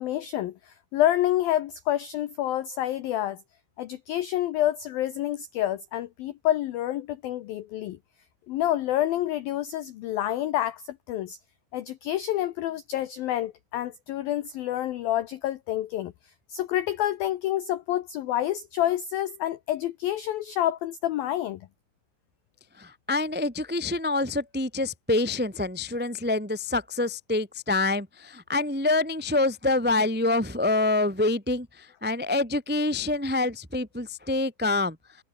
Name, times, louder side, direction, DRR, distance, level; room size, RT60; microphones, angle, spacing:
voice 1, 0.0-3.4 3.8-8.0 8.5-11.4 11.7-21.7, left 13 dB, 85° left, 2.0 m, -28 dB
voice 2, 22.8-34.9, left 2 dB, 15° right, 0.3 m, -26 dB
omnidirectional pair, 5.6 m